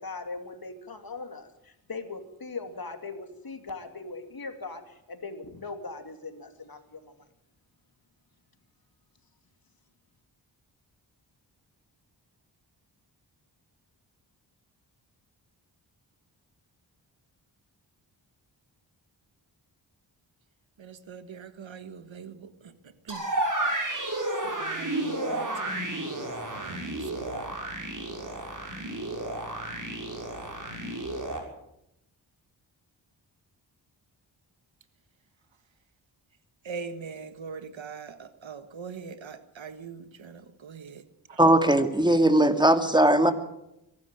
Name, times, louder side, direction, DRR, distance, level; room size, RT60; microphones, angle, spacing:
voice 1, 0.0-7.1, left 3 dB, 50° left, 7 dB, 2.9 m, -40 dB
voice 2, 20.8-23.3 24.4-25.8 26.5-27.6 36.6-41.0 41.3-41.4, right 5 dB, 80° right, 11 dB, 1.6 m, -42 dB
sound 1, 23.1-31.4, right 1 dB, 45° right, 6.5 m, -32 dB
voice 3, 41.4-43.3, right 1 dB, 10° right, 8 dB, 2.4 m, -19 dB
23.0 x 12.5 x 9.1 m, 0.85 s
cardioid pair, 50°, 45 cm